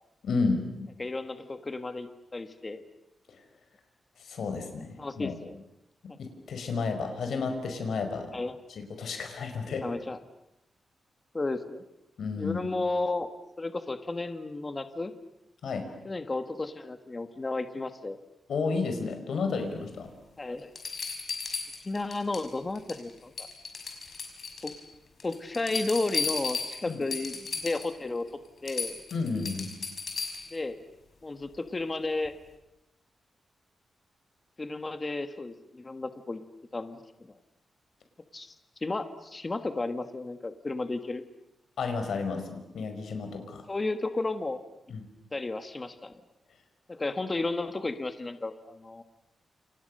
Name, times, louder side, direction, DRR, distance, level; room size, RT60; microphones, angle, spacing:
voice 1, 0.2-0.6 4.2-5.4 6.0-8.3 8.8-9.8 12.2-12.6 15.6-15.9 18.5-20.1 26.9-27.0 29.1-29.7 41.8-43.7 44.9-45.1, left 4 dB, 75° left, 6 dB, 5.2 m, -32 dB
voice 2, 1.0-2.8 4.5-4.6 5.0-5.6 6.1-6.2 8.3-8.6 9.8-10.2 11.3-11.8 12.3-13.3 13.6-15.1 16.0-18.2 20.4-20.7 21.8-23.5 24.6-24.7 25.2-28.3 28.6-29.0 30.5-30.8 31.2-32.3 34.6-36.4 36.7-37.0 38.3-38.5 38.8-41.2 43.7-44.6 45.3-46.1 46.9-49.0, left 2 dB, 20° left, 9 dB, 1.4 m, -33 dB
sound 1, 20.0-20.1 20.8-22.5 22.8-23.1 23.4-24.8 25.2-27.9 28.3-28.4 28.7-30.6 32.3-32.4, left 5 dB, 50° left, 5.9 m, -35 dB
29.5 x 28.5 x 6.6 m, 0.87 s
wide cardioid pair, 165°, 0 cm